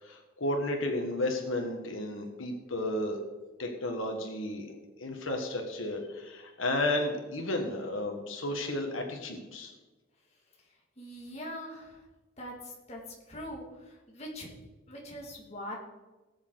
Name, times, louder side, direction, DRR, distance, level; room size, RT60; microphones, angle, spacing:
voice 1, 0.0-3.2 3.6-4.7 5.0-9.7, left 1 dB, 90° left, 3 dB, 1.7 m, -33 dB
voice 2, 11.0-11.8 12.4-12.5 12.9-13.0 13.3-13.6 14.1-14.5 14.9-15.7, equal, 30° left, -2 dB, 2.5 m, -41 dB
18.5 x 7.3 x 4.0 m, 1.2 s
head